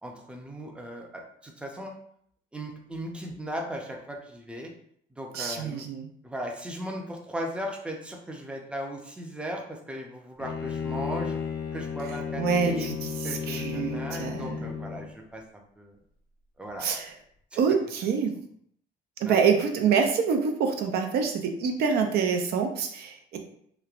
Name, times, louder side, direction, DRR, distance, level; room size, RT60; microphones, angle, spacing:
voice 1, 0.0-1.9 2.5-4.7 5.1-5.9 6.2-11.4 11.7-12.9 13.2-15.4 15.8-16.0 16.6-17.0 19.2-19.4, equal, 5° right, 1 dB, 0.5 m, -37 dB
voice 2, 5.3-6.1 12.4-14.7 16.8-17.1 17.6-18.3 19.2-23.4, right 6 dB, 70° right, 4 dB, 0.5 m, -26 dB
Bowed string instrument, 10.4-15.1, left 6 dB, 65° left, 0.5 m, -33 dB
3.0 x 2.1 x 2.4 m, 0.67 s
cardioid pair, 110°, 17 cm